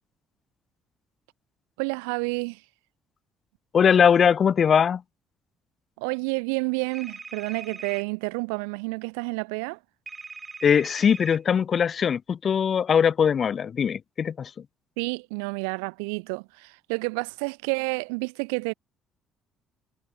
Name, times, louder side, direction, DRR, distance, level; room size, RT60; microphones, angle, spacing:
voice 1, 1.8-2.6 6.0-9.8 15.0-18.7, right 36 dB, 80° right, 0.7 m, -29 dB
voice 2, 3.7-5.0 10.6-14.5, left 7 dB, 50° left, 0.8 m, -21 dB
sound 1, 6.9-8.0 10.1-11.4, right 4 dB, 30° right, 6.9 m, -41 dB
hypercardioid pair, 50°, 0 cm